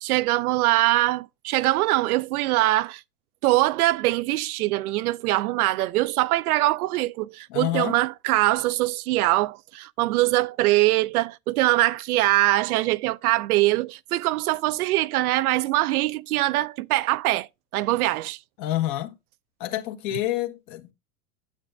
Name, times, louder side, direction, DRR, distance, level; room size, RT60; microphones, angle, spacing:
voice 1, 0.0-3.0 3.4-17.5 17.7-18.4, right 17 dB, 80° right, 0.6 m, -23 dB
voice 2, 7.5-8.0 18.6-19.1 19.6-20.9, left 14 dB, 60° left, 1.5 m, -28 dB
9.1 x 8.0 x 2.2 m
supercardioid pair, 135°, 43 cm